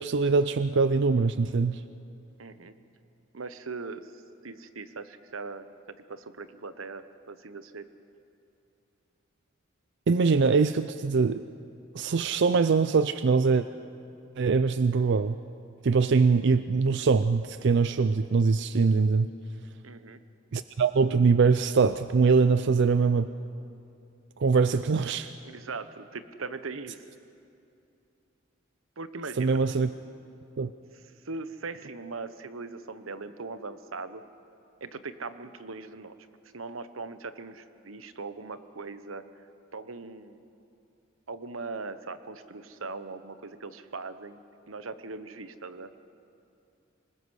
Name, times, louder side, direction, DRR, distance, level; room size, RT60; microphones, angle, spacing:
voice 1, 0.0-1.8 10.1-11.4 11.9-13.7 14.4-15.4 15.8-19.3 20.5-23.3 24.4-25.3 29.4-29.9 30.6-30.7, right 4 dB, 60° right, 12 dB, 0.4 m, -23 dB
voice 2, 2.4-2.7 3.3-4.1 4.4-5.7 6.1-7.9 19.8-20.2 25.4-27.0 29.0-29.6 31.2-34.2 34.8-36.1 36.5-39.2 39.7-40.4 41.3-45.9, right 4 dB, 85° right, 12 dB, 1.0 m, -40 dB
26.0 x 20.5 x 6.3 m, 2.7 s
head